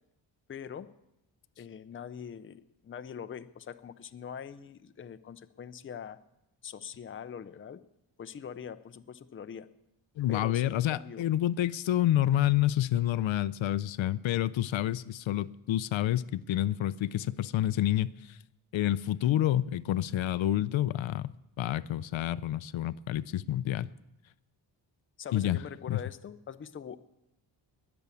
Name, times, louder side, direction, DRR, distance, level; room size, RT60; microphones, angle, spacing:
voice 1, 0.5-0.9 1.6-6.2 6.6-7.8 8.2-9.7 10.3-11.2 25.2-27.0, left 7 dB, 30° left, 0.5 m, -43 dB
voice 2, 10.2-18.4 18.7-21.3 21.6-23.9 25.3-25.6 25.9-26.0, left 13 dB, 80° left, 0.6 m, -28 dB
21.0 x 7.1 x 8.4 m
wide cardioid pair, 155°, 45 cm